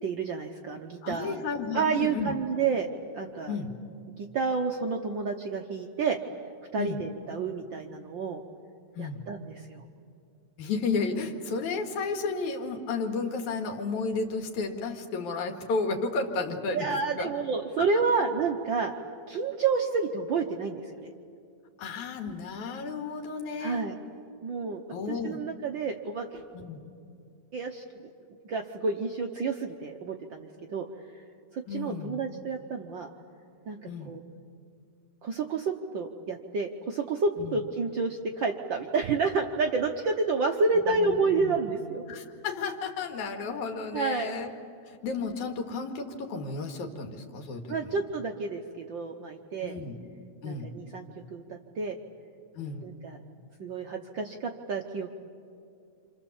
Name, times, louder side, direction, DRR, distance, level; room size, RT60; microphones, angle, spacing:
voice 1, 0.0-1.4 1.7-2.9 3.1-3.5 4.2-6.2 6.7-8.4 9.0-9.8 16.7-18.9 19.3-20.9 23.6-23.9 24.4-24.8 25.1-26.4 27.5-27.8 28.4-30.9 31.5-33.1 33.7-34.2 35.2-42.0 43.9-44.3 47.7-49.8 50.4-52.0 52.8-53.2 53.6-55.2, right 4 dB, 65° right, 3 dB, 1.2 m, -30 dB
voice 2, 1.0-2.3 3.5-3.7 6.8-7.0 8.9-9.2 10.6-17.3 21.8-23.8 24.9-25.4 26.5-26.8 31.7-32.2 33.9-34.1 37.4-37.6 40.9-41.1 41.4-41.7 42.1-44.5 44.8-48.0 49.6-50.0 50.4-50.7 52.5-52.8, left 4 dB, 90° left, 4 dB, 3.2 m, -33 dB
27.0 x 27.0 x 7.2 m, 2.4 s
omnidirectional pair, 3.3 m